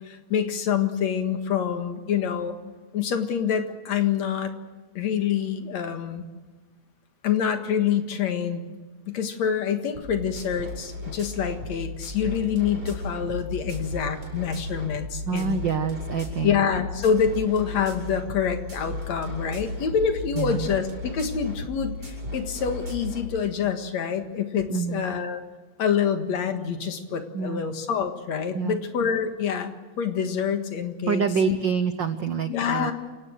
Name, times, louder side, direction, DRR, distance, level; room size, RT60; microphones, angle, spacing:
voice 1, 0.1-2.6 2.9-4.5 5.0-6.3 7.2-8.6 9.0-15.6 16.4-25.4 25.8-31.6 32.5-32.9, left 7 dB, 65° left, 6 dB, 2.9 m, -26 dB
sound 1, 9.9-23.3, left 1 dB, 30° right, 6.7 m, -35 dB
voice 2, 15.2-16.6 20.3-20.7 24.7-25.1 27.3-27.7 28.5-28.8 31.1-32.9, right 6 dB, 75° right, 10 dB, 1.0 m, -26 dB
29.0 x 17.5 x 6.4 m, 1.3 s
omnidirectional pair, 3.4 m